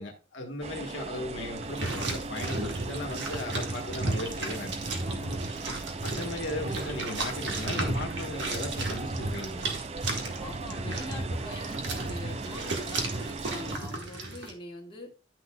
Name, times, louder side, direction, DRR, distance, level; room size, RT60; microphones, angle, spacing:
voice 1, 0.0-4.8 6.0-9.7, left 2 dB, 70° left, 1.2 m, -37 dB
sound 1, 0.6-13.8, right 3 dB, 35° right, 0.4 m, -39 dB
sound 2, 1.5-14.5, right 2 dB, 65° right, 1.7 m, -34 dB
voice 2, 5.1-5.4 10.4-15.1, left 2 dB, 25° left, 1.9 m, -43 dB
10.5 x 6.3 x 2.3 m
head